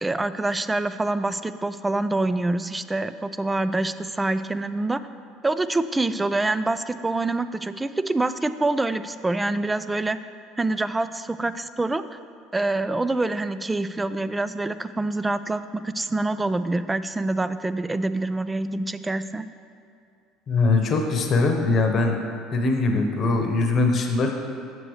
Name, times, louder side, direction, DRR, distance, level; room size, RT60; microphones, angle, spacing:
voice 1, 0.0-5.0 5.4-10.2 10.6-12.2 12.5-19.4, right 2 dB, 15° right, 13 dB, 0.3 m, -26 dB
voice 2, 20.5-22.2 22.5-24.3, left 3 dB, 45° left, 3 dB, 1.0 m, -21 dB
7.7 x 7.6 x 3.2 m, 2.4 s
hypercardioid pair, 80°, 0 cm